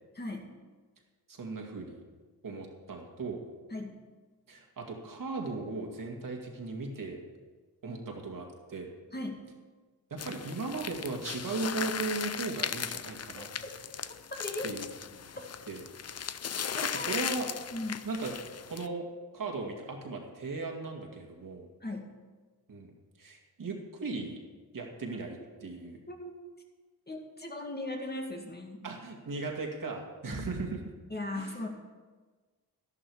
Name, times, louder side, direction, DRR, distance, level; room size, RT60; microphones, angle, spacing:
voice 1, 0.2-0.6 3.7-4.0 9.1-9.5 13.3-13.4 14.0-14.7 16.7-17.2 17.7-18.0 21.8-22.2 26.1-26.3 27.1-28.8 31.1-31.7, left 2 dB, 25° left, 2 dB, 1.9 m, -38 dB
voice 2, 1.3-2.0 2.4-3.4 4.5-7.2 7.8-8.9 10.1-13.5 14.6-14.9 15.1-15.2 15.7-15.8 16.8-17.5 18.1-18.3 18.6-19.1 19.3-21.7 22.7-22.9 23.2-24.4 24.7-26.0 28.8-30.8 31.3-31.7, right 3 dB, 60° right, 1 dB, 2.3 m, -37 dB
sound 1, 10.2-18.9, left 7 dB, 40° left, 0.6 m, -37 dB
11.5 x 11.5 x 4.9 m, 1.4 s
cardioid pair, 70°, 38 cm